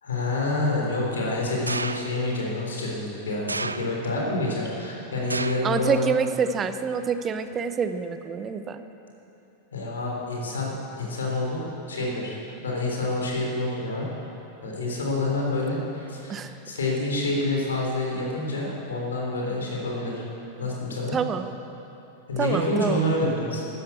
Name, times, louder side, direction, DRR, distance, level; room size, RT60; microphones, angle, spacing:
voice 1, 0.0-6.1 9.7-14.1 14.6-20.2 20.6-21.2 22.3-23.6, left 2 dB, 70° left, -2 dB, 3.6 m, -28 dB
sound 1, 1.7-2.3 3.5-4.3 5.3-5.8 6.2-6.7 7.5-7.6, right 3 dB, 80° right, 0.4 m, -32 dB
voice 2, 5.6-8.8 16.3-16.6 21.1-21.5 22.4-23.0, right 6 dB, 25° right, 10 dB, 0.8 m, -27 dB
14.0 x 11.0 x 8.5 m, 3.0 s
figure-of-eight pair, 90°, 0 cm